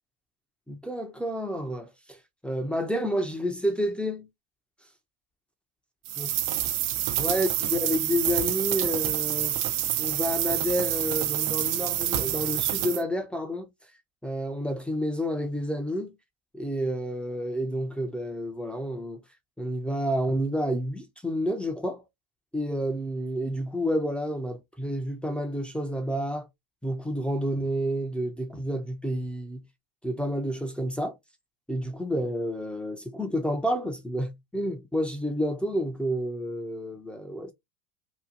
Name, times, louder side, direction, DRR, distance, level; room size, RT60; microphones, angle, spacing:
voice 1, 0.7-2.2 2.4-4.3 6.2-6.3 7.2-9.6 10.0-13.7 14.2-16.2 16.5-19.2 19.6-22.0 22.5-26.5 26.8-29.6 30.0-31.2 31.7-37.5, equal, ahead, 0.7 m, -29 dB
sound 1, 6.1-13.0, right 12 dB, 45° right, 0.6 m, -27 dB
3.0 x 2.3 x 3.7 m
hypercardioid pair, 95°, 47 cm